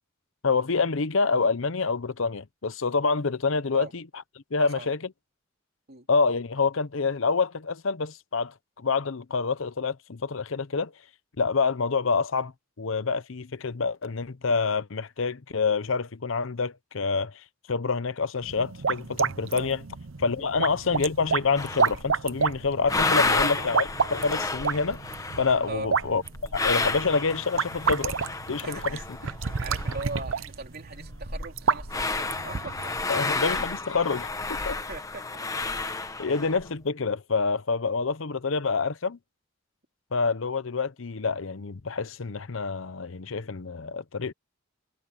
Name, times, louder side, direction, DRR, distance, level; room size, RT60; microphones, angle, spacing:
voice 1, 0.4-4.0 4.5-5.0 6.1-10.9 11.4-12.5 12.8-17.3 17.7-19.8 20.2-25.0 25.4-26.2 26.5-28.2 28.5-28.8 33.1-34.8 36.2-39.2 40.1-44.3, left 4 dB, 70° left, 0.8 m, -27 dB
sound 1, 18.4-33.0, right 5 dB, 70° right, 0.8 m, -30 dB
sound 2, 21.5-22.1 22.5-30.3 30.6-30.7 30.9-36.7, left 3 dB, 15° left, 1.1 m, -31 dB
voice 2, 23.1-23.8 25.7-25.9 28.6-32.9 34.7-35.2 36.3-36.4, right 3 dB, 50° right, 3.4 m, -40 dB
head